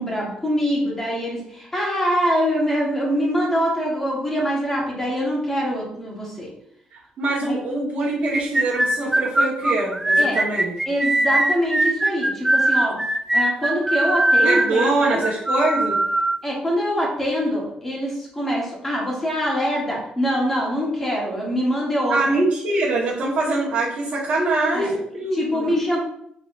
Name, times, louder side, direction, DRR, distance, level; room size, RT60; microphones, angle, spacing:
voice 1, 0.0-6.5 7.4-7.6 10.2-10.4 10.9-13.0 13.3-15.2 16.4-22.2 24.7-24.9 25.3-26.0, equal, 10° left, -4 dB, 1.5 m, -24 dB
voice 2, 6.9-10.7 14.4-16.0 22.1-25.7, right 2 dB, 50° right, -10 dB, 1.5 m, -23 dB
sound 1, 8.3-16.4, right 1 dB, 10° right, 0.3 m, -20 dB
5.8 x 3.3 x 2.6 m, 0.70 s
cardioid pair, 155°, 3 cm